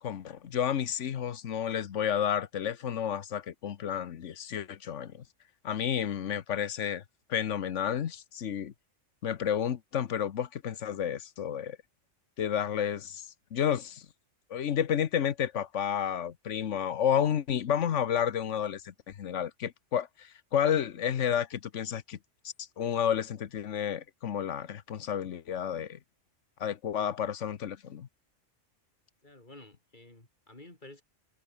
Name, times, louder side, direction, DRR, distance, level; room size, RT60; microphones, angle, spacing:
voice 1, 0.0-5.2 5.6-7.0 7.3-8.7 9.2-11.8 12.4-14.1 14.5-22.2 22.4-26.0 26.6-28.1, left 9 dB, 80° left, 1.3 m, -31 dB
voice 2, 29.2-31.0, left 2 dB, 40° left, 4.3 m, -51 dB
omnidirectional pair, 1.3 m